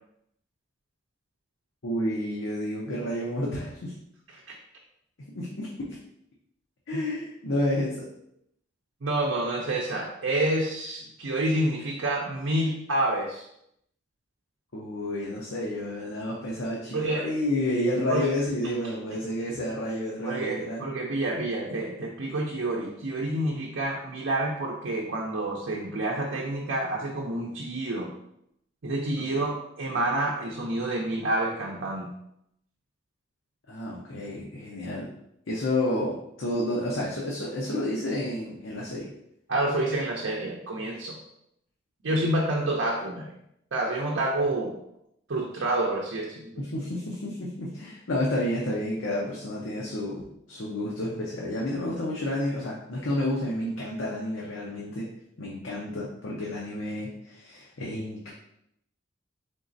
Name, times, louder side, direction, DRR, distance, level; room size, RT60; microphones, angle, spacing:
voice 1, 1.8-3.9 5.3-6.0 6.9-8.1 14.7-20.9 29.2-29.5 33.7-35.2 35.5-39.1 46.6-50.2 50.5-55.1 55.4-58.3, left 1 dB, 85° left, -4 dB, 0.7 m, -30 dB
voice 2, 9.0-13.4 16.9-17.3 18.1-18.3 20.2-28.1 28.8-32.1 39.5-41.2 42.0-43.3 43.7-44.8 45.3-46.6, right 1 dB, 75° right, -2 dB, 0.6 m, -28 dB
3.9 x 3.7 x 2.6 m, 0.76 s
head